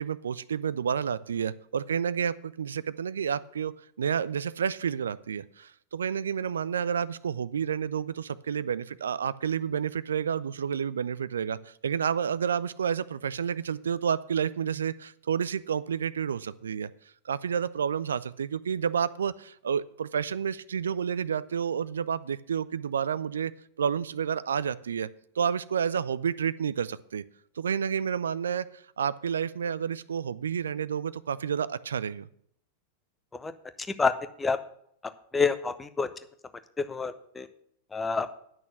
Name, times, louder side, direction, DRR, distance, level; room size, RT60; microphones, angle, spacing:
voice 1, 0.0-16.9 17.3-23.5 23.8-25.1 25.4-27.2 27.6-28.7 29.0-32.3, right 7 dB, 70° right, 18 dB, 0.4 m, -30 dB
voice 2, 35.3-36.1 36.8-37.5 37.9-38.4, left 4 dB, 15° left, 11 dB, 0.8 m, -27 dB
10.5 x 6.3 x 6.8 m, 0.68 s
figure-of-eight pair, 90°, 0 cm